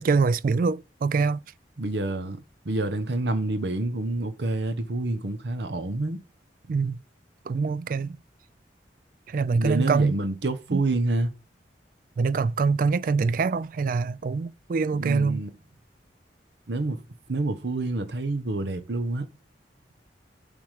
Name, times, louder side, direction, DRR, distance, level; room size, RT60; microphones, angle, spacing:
voice 1, 0.0-1.4 6.7-7.0 7.5-8.2 9.3-10.1 10.7-10.8 12.2-15.4, right 4 dB, 50° right, 0.3 m, -24 dB
voice 2, 1.8-6.2 9.6-11.3 14.9-15.5 16.7-17.0 17.3-19.3, right 2 dB, 75° right, 0.9 m, -28 dB
7.4 x 3.6 x 4.8 m
head